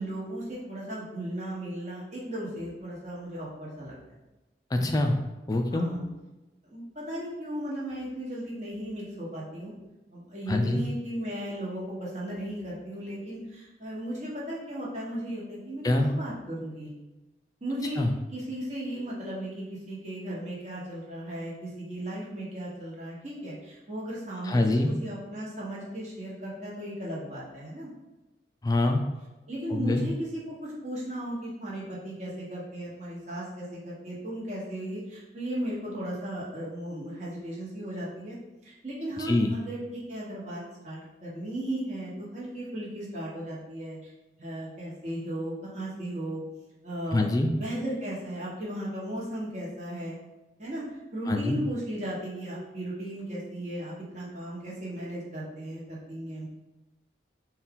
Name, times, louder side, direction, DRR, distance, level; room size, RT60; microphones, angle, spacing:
voice 1, 0.0-3.9 5.7-6.0 6.6-9.7 10.1-16.9 17.6-18.0 18.3-27.9 29.5-38.4 38.6-44.1 44.4-46.4 46.8-47.3 47.5-50.1 50.6-50.8 51.1-56.5, right 1 dB, 40° right, -6 dB, 1.2 m, -36 dB
voice 2, 4.7-5.2 5.5-5.9 10.5-10.8 15.8-16.1 18.0-18.1 24.5-24.9 28.6-29.0 29.7-30.0 39.2-39.5 47.1-47.5 51.3-51.6, left 2 dB, 20° left, 4 dB, 0.3 m, -24 dB
4.2 x 2.3 x 3.6 m, 1.1 s
head